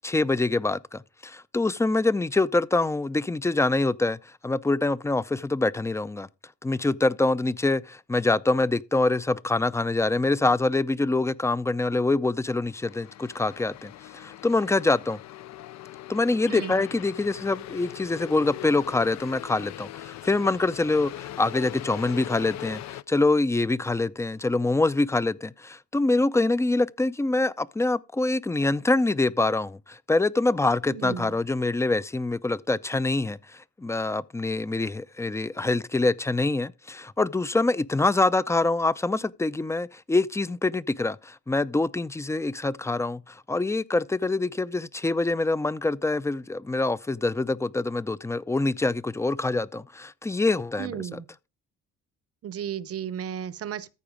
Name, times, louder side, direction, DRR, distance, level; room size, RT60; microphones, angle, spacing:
voice 1, 0.0-6.3 6.6-15.2 16.1-51.2, left 2 dB, 10° left, 0.4 m, -25 dB
sound 1, 12.7-23.0, left 13 dB, 65° left, 0.6 m, -41 dB
voice 2, 30.9-31.3 50.8-51.2 52.4-53.9, right 9 dB, 50° right, 0.7 m, -34 dB
14.0 x 4.7 x 5.0 m
cardioid pair, 90°, 30 cm